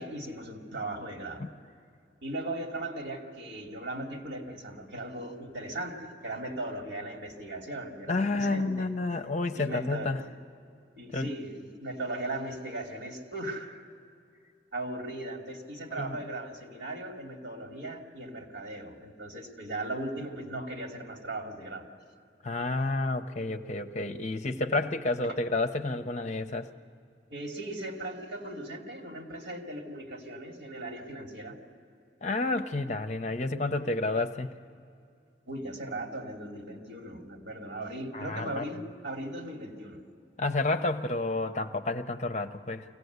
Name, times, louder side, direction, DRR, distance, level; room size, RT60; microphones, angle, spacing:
voice 1, 0.0-1.4 2.2-9.2 9.5-10.2 10.9-13.9 14.7-21.9 27.3-31.6 35.5-40.0, right 1 dB, 75° right, 2 dB, 2.6 m, -38 dB
voice 2, 8.1-10.2 11.1-11.3 15.9-16.2 22.4-26.7 32.2-34.5 38.1-38.6 40.4-42.8, left 2 dB, 40° left, 7 dB, 0.8 m, -30 dB
24.0 x 17.0 x 8.1 m, 2.4 s
head